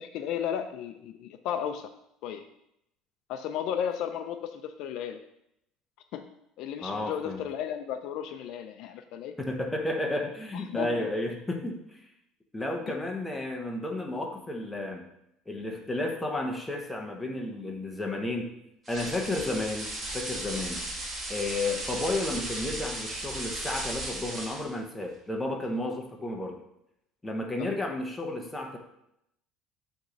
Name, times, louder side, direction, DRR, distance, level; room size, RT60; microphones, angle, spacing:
voice 1, 0.0-1.9 2.2-2.5 3.3-5.2 6.1-6.3 6.6-9.3 10.5-11.1 12.9-13.0 27.6-27.7, left 9 dB, 55° left, 8 dB, 0.4 m, -34 dB
voice 2, 6.8-7.4 9.4-12.1 12.5-15.1 15.5-18.5 18.9-20.8 21.3-26.6 27.2-28.8, left 2 dB, 5° left, 1 dB, 0.8 m, -32 dB
sound 1, 18.9-24.8, right 1 dB, 20° right, 1.3 m, -36 dB
6.4 x 3.1 x 5.9 m, 0.79 s
cardioid pair, 170°, 0 cm